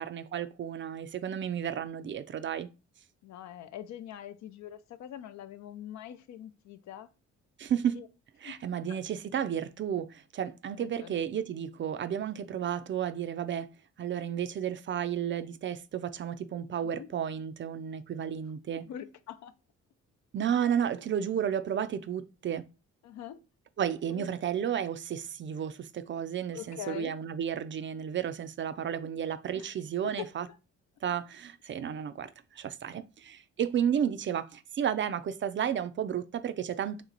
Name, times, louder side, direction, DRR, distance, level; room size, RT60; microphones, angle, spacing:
voice 1, 0.0-2.7 7.6-8.0 8.4-13.7 14.0-18.9 20.3-22.6 23.8-30.5 31.0-37.0, right 9 dB, 40° right, 0.4 m, -32 dB
voice 2, 3.2-7.1 7.9-8.1 8.4-8.6 8.9-9.0 10.8-11.2 16.9-17.1 18.8-19.5 23.0-23.4 24.1-24.3 26.5-27.1 29.5-29.7 30.0-30.3 34.1-34.2, left 10 dB, 65° left, 0.5 m, -43 dB
3.2 x 3.0 x 3.8 m
cardioid pair, 90°, 30 cm